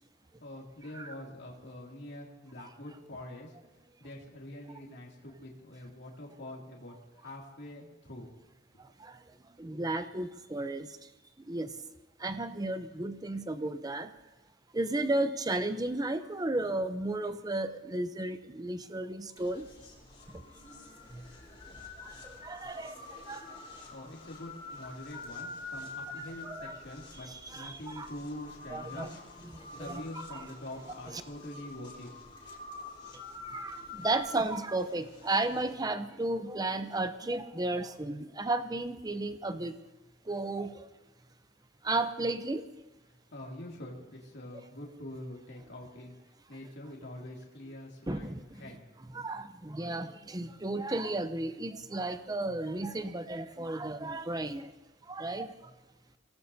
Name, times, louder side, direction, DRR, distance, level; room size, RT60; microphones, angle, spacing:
voice 1, 0.4-3.5 4.0-8.3 23.9-32.1 43.3-46.1 46.5-48.9, left 1 dB, 55° left, -2 dB, 2.6 m, -45 dB
voice 2, 9.6-10.9 11.5-11.7 12.2-14.1 14.7-19.7 21.1-21.2 22.0-22.9 23.3-23.5 26.4-26.7 27.2-28.1 28.7-29.1 29.8-30.0 30.3-30.4 33.5-39.8 40.3-40.9 41.8-42.6 48.1-48.4 49.1-54.7 55.1-55.5, right 2 dB, 20° right, 10 dB, 0.6 m, -33 dB
sound 1, 19.4-35.7, left 3 dB, 25° left, 4.2 m, -47 dB
25.5 x 18.0 x 2.8 m, 1.1 s
head